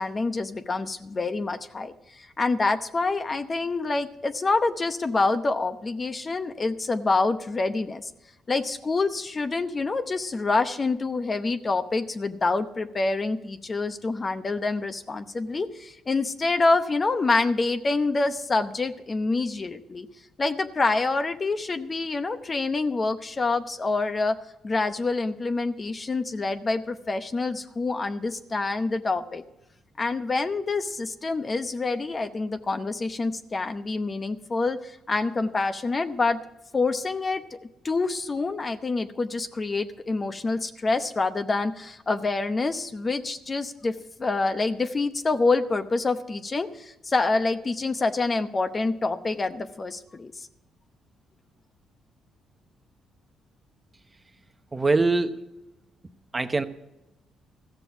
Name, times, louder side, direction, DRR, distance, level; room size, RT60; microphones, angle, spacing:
voice 1, 0.0-8.1 8.5-20.1 20.4-24.4 24.6-29.4 30.0-36.4 36.7-37.4 37.8-43.9 44.2-50.5, left 3 dB, 30° left, 9 dB, 0.8 m, -26 dB
voice 2, 54.7-55.4 56.3-56.6, right 3 dB, 25° right, 8 dB, 0.8 m, -23 dB
14.5 x 6.9 x 8.0 m, 0.92 s
cardioid pair, 90°, 0 cm